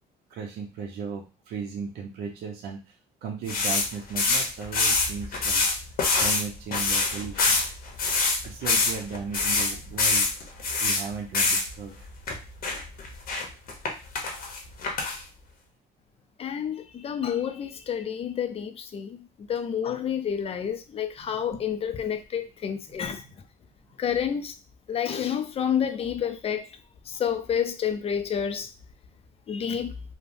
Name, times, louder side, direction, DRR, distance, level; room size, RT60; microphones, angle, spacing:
voice 1, 0.3-2.9 3.2-5.6 6.2-7.6 8.4-10.3 10.8-12.0 21.3-21.4 22.8-23.3, right 6 dB, 75° right, 0.7 m, -36 dB
sound 1, 3.5-6.4 6.7-11.0 11.3-11.7 12.3-12.4 12.6-13.9 14.1-15.2, left 4 dB, 60° left, 0.8 m, -25 dB
voice 2, 16.4-19.2 19.5-23.2 24.0-24.5 24.9-26.7 27.1-28.7 29.5-29.9, left 8 dB, 35° left, 0.4 m, -29 dB
3.2 x 2.1 x 2.6 m
cardioid pair, 110°, 17 cm